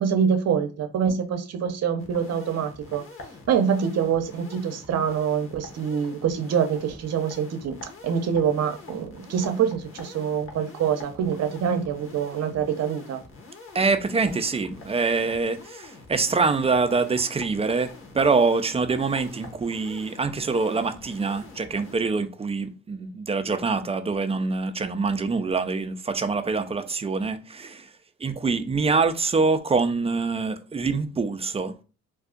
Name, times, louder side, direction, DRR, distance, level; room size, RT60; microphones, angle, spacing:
voice 1, 0.0-3.0 3.5-7.8 8.0-13.2, right 7 dB, 55° right, 0.7 m, -25 dB
sound 1, 2.0-21.9, left 3 dB, 45° left, 1.1 m, -45 dB
voice 2, 13.7-17.9 18.1-27.9 28.2-31.7, right 4 dB, 20° right, 0.4 m, -25 dB
2.6 x 2.3 x 3.7 m
cardioid pair, 90°, 30 cm